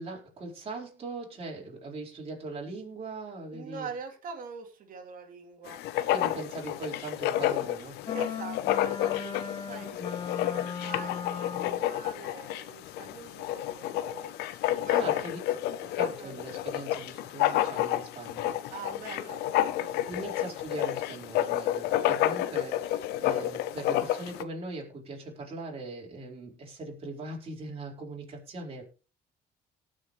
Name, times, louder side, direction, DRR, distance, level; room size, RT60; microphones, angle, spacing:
voice 1, 0.0-3.9 6.1-8.0 14.5-15.4 15.8-18.5 20.1-28.8, right 2 dB, 35° right, -2 dB, 4.4 m, -40 dB
voice 2, 3.5-5.8 8.1-15.4 16.2-16.3 18.7-20.6, right 4 dB, 55° right, 2 dB, 3.1 m, -44 dB
Writing, 5.7-24.4, left 13 dB, 85° left, 0.8 m, -30 dB
sound 1, 8.1-11.9, left 6 dB, 30° left, 0.9 m, -37 dB
18.5 x 6.5 x 3.2 m, 0.34 s
cardioid pair, 105°, 16 cm